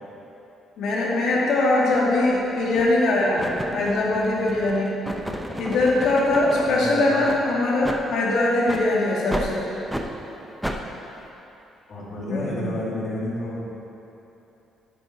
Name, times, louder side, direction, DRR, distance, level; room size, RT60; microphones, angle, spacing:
voice 1, 0.8-4.9 5.6-9.6 12.3-12.7, left 2 dB, 70° left, -4 dB, 2.2 m, -22 dB
sound 1, 1.9-2.1 2.7-3.0 3.4-6.8 7.2-7.4 7.8-8.0 8.6-8.9 9.3-9.5 9.9-10.1 10.6-10.8, equal, 5° right, 0.7 m, -32 dB
voice 2, 6.6-7.2 11.9-13.7, left 1 dB, 45° left, -5 dB, 2.3 m, -30 dB
9.7 x 9.4 x 4.2 m, 3.0 s
cardioid pair, 130°, 0 cm